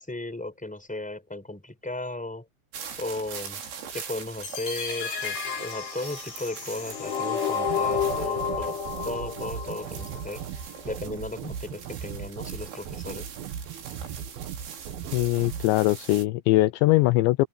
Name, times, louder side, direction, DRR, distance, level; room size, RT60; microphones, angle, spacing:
voice 1, 0.0-2.5 3.0-3.6 3.9-13.3, left 2 dB, ahead, 4.0 m, -36 dB
sound 1, 2.7-16.3, right 7 dB, 80° right, 7.7 m, -43 dB
sound 2, 4.4-10.4, left 6 dB, 55° left, 7.5 m, -31 dB
sound 3, 7.7-15.7, right 8 dB, 60° right, 2.8 m, -38 dB
voice 2, 15.1-17.5, left 18 dB, 90° left, 2.6 m, -21 dB
open air
omnidirectional pair, 5.9 m